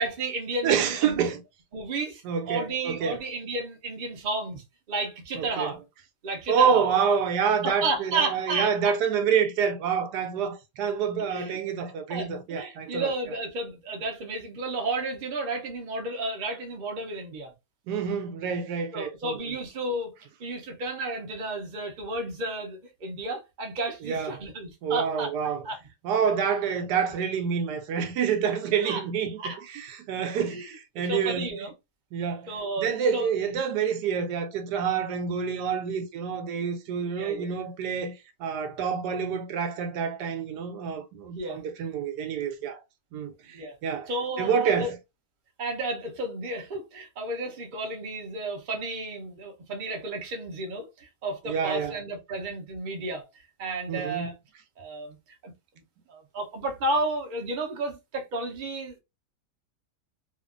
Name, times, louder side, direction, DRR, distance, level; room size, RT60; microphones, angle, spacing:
voice 1, 0.0-1.3 1.7-5.8 6.2-6.9 7.6-8.9 11.2-11.6 12.1-17.5 18.9-20.1 20.4-25.3 25.6-25.8 28.8-29.0 29.4-29.6 30.4-30.7 31.0-31.7 32.5-33.3 37.2-37.6 41.3-41.6 43.5-43.8 44.1-44.9 45.6-53.3 53.6-54.3 54.8-55.2 55.4-55.5 56.1-59.0, right 2 dB, 55° right, 0.5 m, -32 dB
voice 2, 0.6-1.4 2.2-3.2 5.4-5.7 6.5-13.1 17.9-19.4 24.0-24.3 24.8-25.6 26.0-29.4 29.7-31.7 32.1-38.1 38.4-42.8 43.1-44.1 44.4-45.0 51.5-52.0 53.9-54.3, right 7 dB, 80° right, 1.1 m, -27 dB
2.8 x 2.5 x 2.4 m
omnidirectional pair, 1.8 m